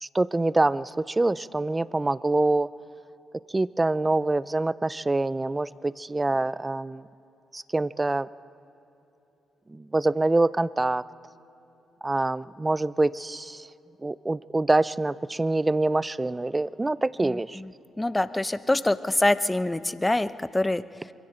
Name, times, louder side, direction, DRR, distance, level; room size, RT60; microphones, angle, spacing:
voice 1, 0.0-2.7 3.5-7.0 7.5-8.3 9.7-11.0 12.0-13.7 14.0-17.6, right 2 dB, 20° right, 18 dB, 0.5 m, -25 dB
voice 2, 17.2-17.7 18.0-21.1, left 2 dB, 15° left, 13 dB, 0.7 m, -25 dB
26.5 x 22.5 x 4.4 m, 2.9 s
cardioid pair, 70°, 0 cm